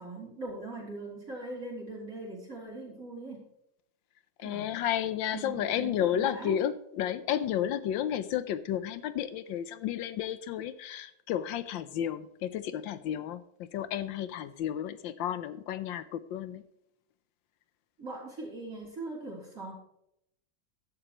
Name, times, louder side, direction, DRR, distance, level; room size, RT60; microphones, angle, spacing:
voice 1, 0.0-3.4 4.4-4.7 5.3-6.6 18.0-19.7, right 2 dB, 45° right, -3 dB, 3.7 m, -40 dB
voice 2, 4.4-16.6, left 10 dB, 85° left, 14 dB, 1.4 m, -32 dB
14.5 x 11.0 x 3.0 m, 0.76 s
omnidirectional pair, 2.1 m